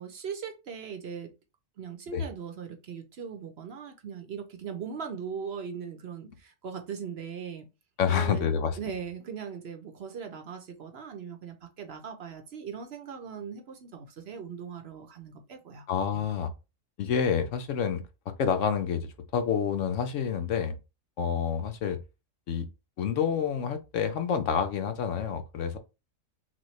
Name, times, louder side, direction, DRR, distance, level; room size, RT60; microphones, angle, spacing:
voice 1, 0.0-1.3 1.8-7.6 8.1-8.5 8.8-15.9, right 6 dB, 60° right, 0.9 m, -39 dB
voice 2, 8.0-8.8 15.9-16.5 17.0-18.0 18.4-20.8 21.2-22.0 22.5-22.7 23.0-25.8, left 7 dB, 75° left, 1.0 m, -28 dB
6.1 x 2.3 x 3.1 m
omnidirectional pair, 1.3 m